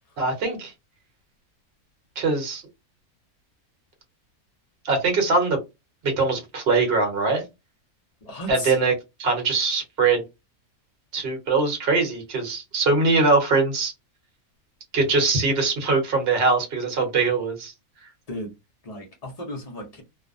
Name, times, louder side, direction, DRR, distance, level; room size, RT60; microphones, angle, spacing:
voice 1, 0.2-0.7 2.2-2.6 4.8-5.6 6.0-7.4 8.5-8.9 9.2-10.2 11.1-13.9 14.9-17.7, right 3 dB, 45° right, 1.1 m, -22 dB
voice 2, 8.2-8.8 18.3-18.5 18.8-20.0, equal, 50° left, 0.4 m, -35 dB
2.6 x 2.1 x 2.5 m
omnidirectional pair, 1.6 m